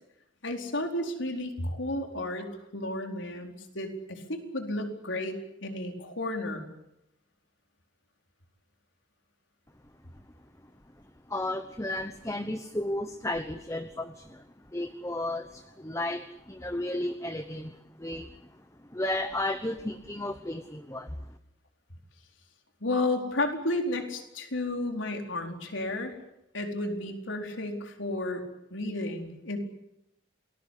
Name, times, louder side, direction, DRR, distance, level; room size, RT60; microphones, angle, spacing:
voice 1, 0.4-6.7 22.8-26.2 26.5-28.4 28.7-29.6, left 2 dB, 75° left, 4 dB, 4.3 m, -32 dB
voice 2, 11.3-14.4 14.7-17.7 18.0-18.3 18.9-21.1, left 1 dB, 15° left, 9 dB, 1.0 m, -33 dB
28.5 x 20.5 x 8.3 m, 0.86 s
head